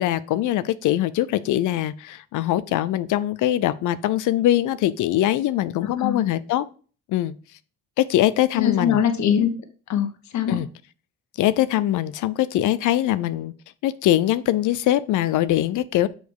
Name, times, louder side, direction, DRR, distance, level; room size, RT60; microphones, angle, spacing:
voice 1, 0.0-6.7 7.1-7.3 8.0-9.0 10.5-10.7 11.4-13.5 13.8-16.1, left 13 dB, 85° left, 0.6 m, -22 dB
voice 2, 5.8-6.2 8.5-9.5 9.9-10.6, left 8 dB, 65° left, 1.3 m, -22 dB
6.4 x 5.2 x 4.7 m
cardioid pair, 90°, 30 cm